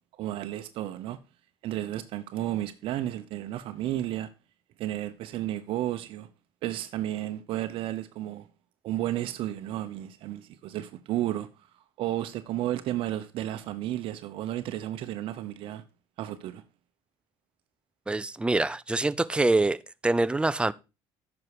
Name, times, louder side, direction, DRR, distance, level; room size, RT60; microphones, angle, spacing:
voice 1, 0.2-1.2 1.6-4.3 4.8-6.3 6.6-8.5 8.8-11.5 12.0-15.8 16.2-16.6, right 13 dB, 70° right, 0.8 m, -32 dB
voice 2, 18.1-20.7, right 2 dB, 10° right, 0.5 m, -25 dB
9.6 x 6.2 x 4.8 m
cardioid pair, 100°, 10 cm